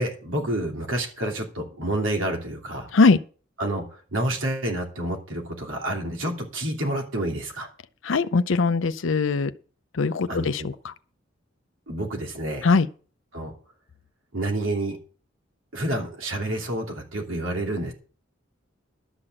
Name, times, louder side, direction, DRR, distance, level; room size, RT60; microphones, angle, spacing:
voice 1, 0.0-2.9 3.6-3.8 4.1-7.7 10.3-10.5 11.9-12.7 13.3-13.5 14.3-15.0 15.7-17.9, right 1 dB, 80° right, 2.9 m, -28 dB
voice 2, 8.0-9.5 9.9-10.9 12.6-12.9, left 4 dB, 75° left, 0.6 m, -21 dB
12.0 x 5.9 x 7.6 m
head